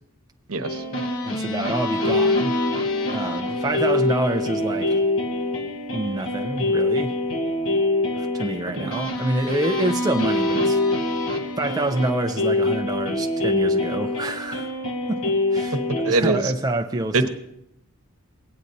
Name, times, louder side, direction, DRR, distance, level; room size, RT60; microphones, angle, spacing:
voice 1, 0.5-0.8 8.7-9.0 16.0-16.5 17.1-17.3, right 3 dB, 75° right, 7 dB, 0.9 m, -23 dB
sound 1, 0.6-16.1, left 2 dB, 65° left, 1.1 m, -24 dB
voice 2, 1.2-2.5 3.1-5.0 5.9-7.1 8.2-10.8 11.6-14.7 15.1-15.8 16.1-17.3, right 2 dB, 15° right, 4 dB, 0.4 m, -27 dB
17.0 x 9.5 x 2.6 m, 0.80 s
head